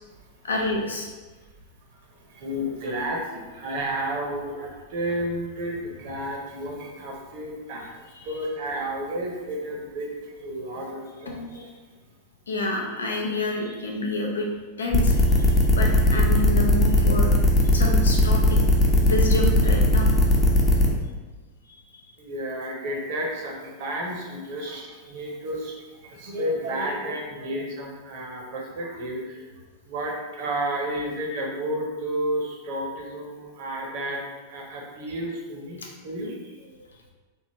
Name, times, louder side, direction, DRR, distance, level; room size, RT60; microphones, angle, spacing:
voice 1, 0.4-1.1 8.1-8.3 11.3-11.6 12.5-14.5 14.8-17.3 17.6-18.6 19.0-20.1 21.9-22.1 24.6-24.7, left 2 dB, 70° left, 0 dB, 0.5 m, -29 dB
voice 2, 2.2-11.7 22.2-25.7 26.0-34.2 34.5-36.9, right 1 dB, 50° right, -1 dB, 0.8 m, -32 dB
sound 1, 14.9-20.9, left 1 dB, 20° left, 0.6 m, -18 dB
3.5 x 2.4 x 2.9 m, 1.3 s
figure-of-eight pair, 90°, 0 cm